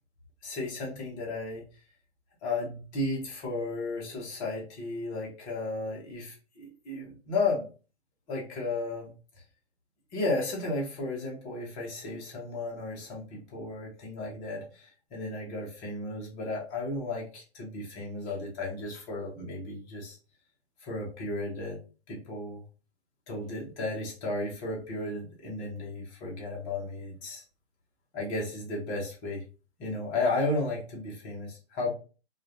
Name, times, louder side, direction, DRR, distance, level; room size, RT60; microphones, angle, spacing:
voice 1, 0.4-1.6 2.4-7.7 8.3-9.1 10.1-20.2 20.8-21.8 22.1-22.6 23.3-27.4 28.1-29.4 29.8-31.9, left 2 dB, 15° left, 0.4 m, -34 dB
2.3 x 2.1 x 2.7 m
hypercardioid pair, 140°, 34 cm